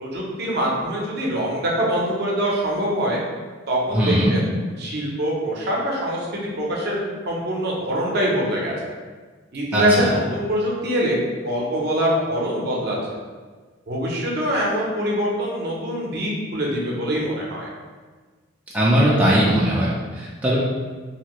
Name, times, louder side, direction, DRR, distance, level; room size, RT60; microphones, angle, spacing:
voice 1, 0.0-3.2 3.7-4.4 4.8-7.0 7.3-9.0 9.5-13.2 13.9-17.7, equal, 55° right, -3 dB, 0.6 m, -24 dB
voice 2, 3.9-4.3 9.7-10.1 18.7-20.6, equal, 10° right, -7 dB, 0.4 m, -19 dB
2.8 x 2.6 x 3.0 m, 1.4 s
head